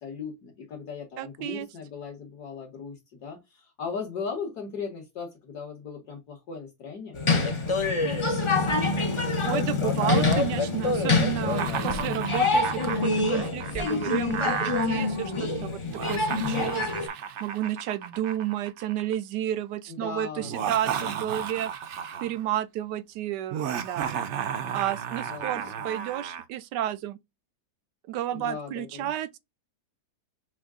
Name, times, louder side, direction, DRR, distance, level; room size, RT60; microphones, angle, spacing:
voice 1, 0.0-8.1 11.8-12.2 15.9-16.3 19.9-21.2 25.3-25.6 28.3-29.1, left 5 dB, 65° left, 2.2 m, -38 dB
voice 2, 1.2-1.7 9.4-15.8 16.1-21.7 22.2-24.2 24.7-27.2 28.1-29.4, right 12 dB, 80° right, 1.2 m, -31 dB
sound 1, 7.1-17.1, left 3 dB, 40° left, 0.4 m, -26 dB
Laughter, 11.5-14.9 15.8-19.1 20.4-22.4 23.5-26.4, right 8 dB, 65° right, 0.7 m, -33 dB
6.2 x 2.4 x 3.6 m
omnidirectional pair, 1.8 m